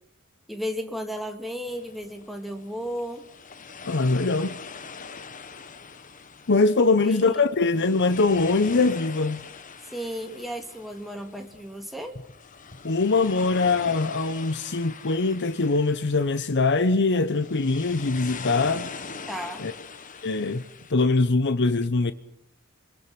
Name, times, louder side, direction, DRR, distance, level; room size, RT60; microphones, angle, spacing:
voice 1, 0.5-3.3 7.0-7.4 9.9-12.2 19.3-19.6, equal, ahead, 2.3 m, -34 dB
sound 1, 1.7-20.9, left 5 dB, 40° left, 1.2 m, -42 dB
voice 2, 3.8-4.6 6.5-9.5 12.8-18.9 19.6-19.7 20.2-20.6 20.9-22.1, left 3 dB, 55° left, 0.9 m, -22 dB
29.5 x 21.5 x 6.1 m
head